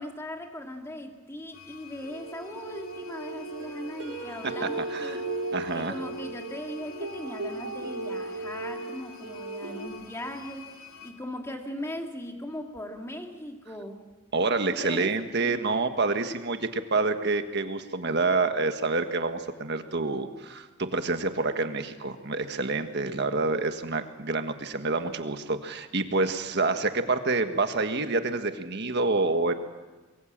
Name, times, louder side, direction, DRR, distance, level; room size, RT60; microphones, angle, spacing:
voice 1, 0.0-5.4 5.7-14.0 14.7-15.7, left 1 dB, 10° left, 3 dB, 2.2 m, -39 dB
sound 1, 1.5-11.1, left 6 dB, 75° left, 3.0 m, -49 dB
sound 2, 2.0-9.9, right 2 dB, 80° right, 4.6 m, -36 dB
voice 2, 4.6-5.2 5.5-5.9 14.3-29.5, right 3 dB, 55° right, 7 dB, 1.6 m, -27 dB
24.5 x 23.0 x 7.5 m, 1.2 s
head